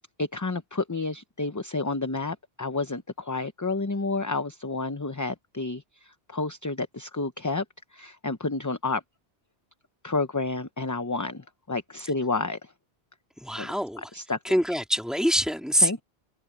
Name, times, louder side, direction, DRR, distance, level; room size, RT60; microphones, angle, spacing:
voice 1, 0.2-7.6 7.9-9.0 10.0-12.7 13.6-13.7 14.1-14.4 15.8-16.0, left 3 dB, 20° left, 0.7 m, -30 dB
voice 2, 13.4-14.1 14.4-15.9, equal, ahead, 2.5 m, -25 dB
omnidirectional pair, 1.1 m